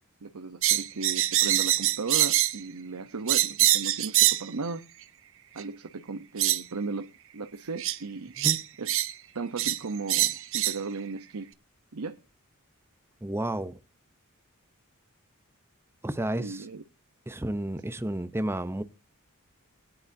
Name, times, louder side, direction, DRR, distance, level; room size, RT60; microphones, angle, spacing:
voice 1, 0.2-4.8 5.5-8.3 8.8-9.0 9.3-11.5 11.9-12.2 16.4-16.8, right 4 dB, 90° right, 0.9 m, -36 dB
sound 1, 0.6-2.6 3.3-4.5 5.6-5.7 6.4-6.6 7.8-8.0 8.4-9.1 9.6-9.8 10.1-10.8, right 14 dB, 60° right, 0.9 m, -24 dB
voice 2, 13.2-13.8 16.0-16.7 17.3-18.8, right 1 dB, 10° right, 0.7 m, -31 dB
20.0 x 9.9 x 2.7 m
head